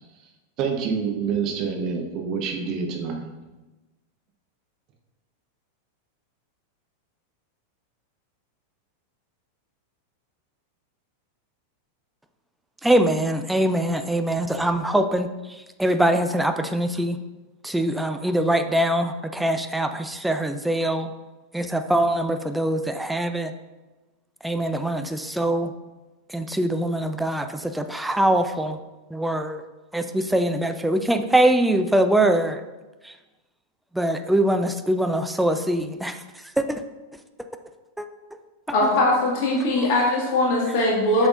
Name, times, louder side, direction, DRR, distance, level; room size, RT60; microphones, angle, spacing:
voice 1, 0.6-3.2, right 6 dB, 40° right, 2 dB, 1.0 m, -27 dB
voice 2, 12.8-17.2 17.6-21.1 21.5-23.5 24.4-25.7 26.3-28.8 29.1-29.6 29.9-32.6 33.0-33.2 33.9-36.8 38.0-38.1 38.8-38.9 39.8-39.9, right 1 dB, 5° right, 7 dB, 0.4 m, -23 dB
voice 3, 38.7-41.3, left 1 dB, 45° left, -3 dB, 1.9 m, -21 dB
7.5 x 5.9 x 2.6 m, 1.1 s
figure-of-eight pair, 90°, 0 cm